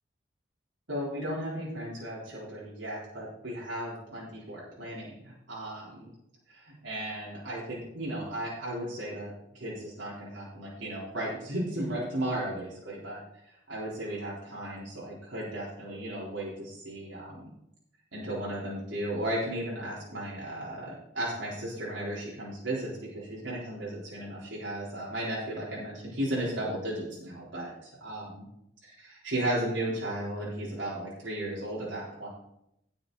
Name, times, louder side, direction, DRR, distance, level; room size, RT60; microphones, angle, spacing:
voice 1, 0.9-6.1 6.5-17.5 18.1-28.4 28.8-32.3, right 1 dB, 75° right, -7 dB, 3.8 m, -35 dB
17.0 x 6.9 x 4.0 m, 0.79 s
head